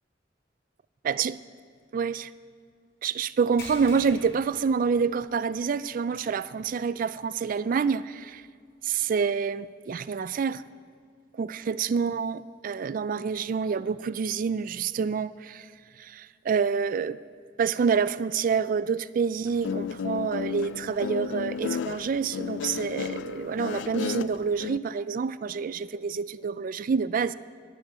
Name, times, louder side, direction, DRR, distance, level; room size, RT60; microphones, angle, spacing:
voice 1, 1.0-1.4 1.9-2.3 3.0-8.4 8.8-10.6 11.4-15.7 16.0-17.2 17.6-27.3, right 6 dB, 50° right, 0.3 m, -27 dB
sound 1, 3.6-5.5 5.8-6.0 6.5-6.6 8.3-8.4, left 2 dB, 60° left, 4.9 m, -45 dB
Guitar, 19.5-24.8, left 7 dB, 85° left, 0.3 m, -33 dB
11.5 x 11.5 x 8.6 m
head